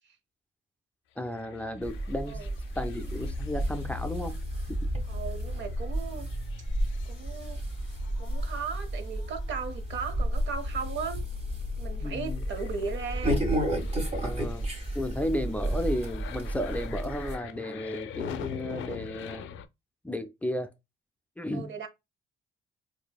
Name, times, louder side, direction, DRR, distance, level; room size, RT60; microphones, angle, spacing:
voice 1, 1.2-2.4 2.8-4.4 4.7-4.8 12.0-12.4 14.2-14.7 14.9-19.5 20.0-20.7 21.4-21.7, left 1 dB, 5° left, 0.4 m, -33 dB
sound 1, 1.3-19.6, left 8 dB, 80° left, 0.4 m, -41 dB
sound 2, 1.8-17.4, right 1 dB, 35° right, 1.7 m, -32 dB
voice 2, 5.1-6.3 7.1-7.6 8.2-11.2 11.8-13.5 21.5-21.9, right 5 dB, 70° right, 0.8 m, -37 dB
4.3 x 2.6 x 2.2 m
cardioid pair, 90°, 20 cm